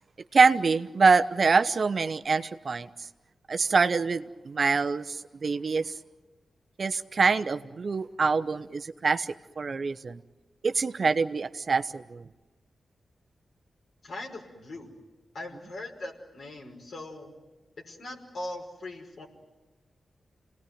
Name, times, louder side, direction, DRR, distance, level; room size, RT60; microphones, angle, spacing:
voice 1, 0.3-2.9 3.5-5.9 6.8-10.2 10.6-12.3, right 4 dB, 60° right, 10 dB, 1.0 m, -25 dB
voice 2, 14.0-14.9 15.3-17.3 17.9-19.3, left 2 dB, 65° left, 1 dB, 5.4 m, -40 dB
28.0 x 19.0 x 9.4 m, 1.2 s
cardioid pair, 50°, 0 cm